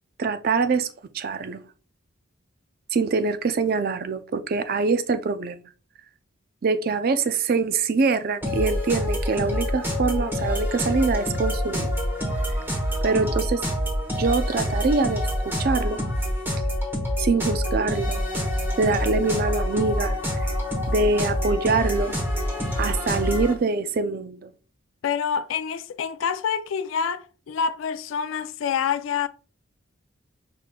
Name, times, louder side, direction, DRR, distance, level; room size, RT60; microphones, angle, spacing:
voice 1, 0.2-0.9 1.1-1.6 2.9-5.6 6.6-11.9 13.0-13.7 14.2-15.2 15.6-16.0 17.2-18.2 18.8-20.5 20.9-22.2 22.8-24.5, right 4 dB, 50° right, 0.4 m, -24 dB
sound 1, 8.4-23.5, equal, 10° right, 0.9 m, -26 dB
voice 2, 25.0-29.3, left 7 dB, 80° left, 0.3 m, -27 dB
4.9 x 4.1 x 2.2 m
head